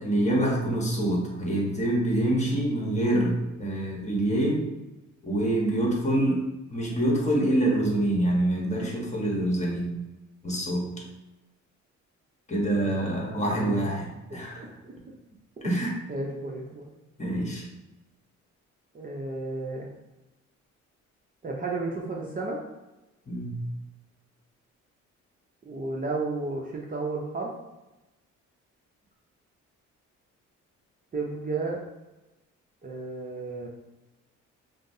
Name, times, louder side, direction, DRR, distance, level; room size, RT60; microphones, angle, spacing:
voice 1, 0.0-4.7 5.2-6.4 6.7-9.9 10.4-10.9 12.5-14.7 15.6-15.9 17.2-17.6 23.3-23.6, right 1 dB, 25° left, -2 dB, 1.1 m, -26 dB
voice 2, 13.5-14.0 14.8-14.9 15.6-15.7 16.1-16.9 18.9-19.9 21.4-22.6 25.6-27.5 31.1-31.8 32.8-33.7, right 3 dB, 30° right, -2 dB, 0.6 m, -33 dB
5.0 x 2.0 x 2.7 m, 1.0 s
cardioid pair, 90°, 30 cm